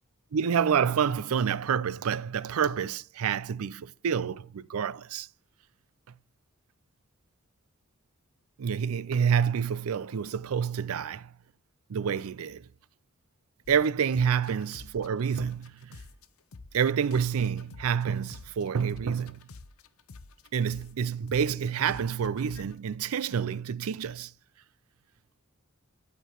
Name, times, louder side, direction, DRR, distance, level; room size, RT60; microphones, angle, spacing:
voice 1, 0.3-5.3 8.6-11.3 11.9-12.7 13.7-16.0 16.7-19.4 20.5-24.3, right 7 dB, 80° right, 0.4 m, -28 dB
sound 1, 13.7-16.3 16.5-22.8, left 3 dB, 75° left, 0.7 m, -48 dB
11.0 x 4.6 x 3.9 m
head